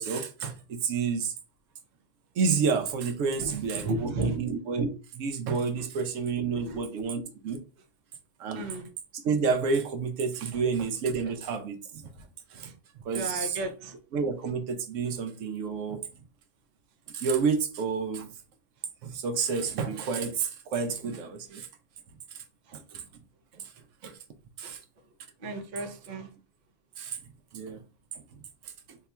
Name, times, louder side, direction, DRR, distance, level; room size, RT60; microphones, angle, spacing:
voice 1, 0.0-1.3 2.4-7.6 8.4-8.7 9.1-13.6 14.1-16.0 17.1-18.3 19.0-21.7 22.3-22.4 22.7-23.0 23.5-23.7 24.0-24.2 24.6-24.8 27.0-27.2 27.5-27.8 28.1-29.0, right 5 dB, 85° right, 1.0 m, -30 dB
voice 2, 3.4-4.4 5.8-5.9 6.5-6.8 8.5-8.9 12.6-12.7 13.1-14.0 24.6-24.7 25.4-26.3, right 2 dB, 50° right, 0.6 m, -33 dB
2.8 x 2.3 x 4.1 m
omnidirectional pair, 1.3 m